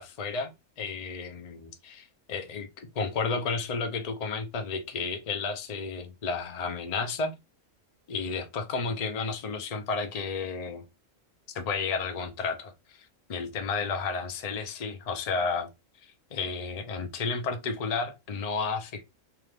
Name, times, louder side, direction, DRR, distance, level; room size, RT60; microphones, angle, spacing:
voice 1, 0.0-7.3 8.1-10.8 11.5-12.7 13.0-15.7 16.3-19.0, left 4 dB, 45° left, 0.5 m, -32 dB
3.0 x 2.4 x 3.3 m
omnidirectional pair, 1.4 m